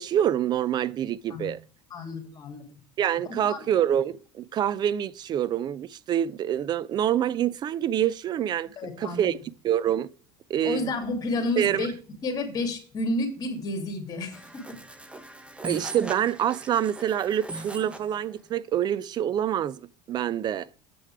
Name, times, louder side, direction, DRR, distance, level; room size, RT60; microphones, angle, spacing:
voice 1, 0.0-1.6 3.0-8.7 9.0-9.4 9.6-10.1 10.5-10.9 11.6-11.9 15.6-19.8 20.1-20.7, right 10 dB, 40° right, 0.5 m, -26 dB
voice 2, 1.9-2.6 3.2-3.6 8.8-9.3 10.6-11.9 12.2-14.8, left 2 dB, 35° left, 2.7 m, -31 dB
sound 1, 14.3-18.1, right 2 dB, 10° right, 1.1 m, -39 dB
8.0 x 6.5 x 4.7 m
hypercardioid pair, 90°, 11 cm